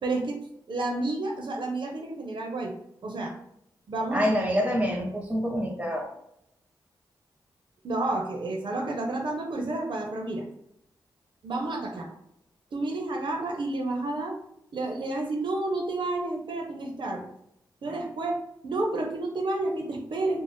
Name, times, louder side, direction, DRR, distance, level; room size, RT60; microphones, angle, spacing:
voice 1, 0.0-0.4 0.7-2.7 3.0-3.4 3.9-4.3 7.8-10.4 11.4-12.1 12.7-14.4 14.7-17.3 17.8-18.4 18.6-20.4, right 2 dB, 65° right, 1 dB, 0.5 m, -30 dB
voice 2, 4.1-6.1, equal, 15° right, 1 dB, 0.7 m, -26 dB
2.5 x 2.0 x 3.4 m, 0.78 s
cardioid pair, 60°, 9 cm